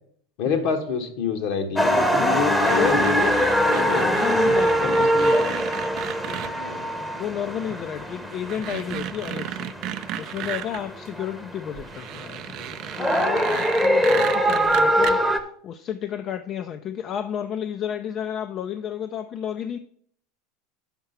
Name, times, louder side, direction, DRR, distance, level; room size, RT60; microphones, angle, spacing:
voice 1, 0.4-3.2 3.7-5.5 6.6-6.8, left 5 dB, 60° left, 6 dB, 1.3 m, -28 dB
sound 1, 1.8-15.4, equal, 5° left, 0.9 m, -23 dB
voice 2, 2.2-3.5 3.8-5.1 7.0-19.8, left 9 dB, 45° left, 9 dB, 0.5 m, -32 dB
sound 2, 2.7-6.5 7.7-7.8 8.3-10.8 11.7-15.1, right 12 dB, 50° right, 0.5 m, -34 dB
5.9 x 5.5 x 6.9 m, 0.63 s
hypercardioid pair, 90°, 0 cm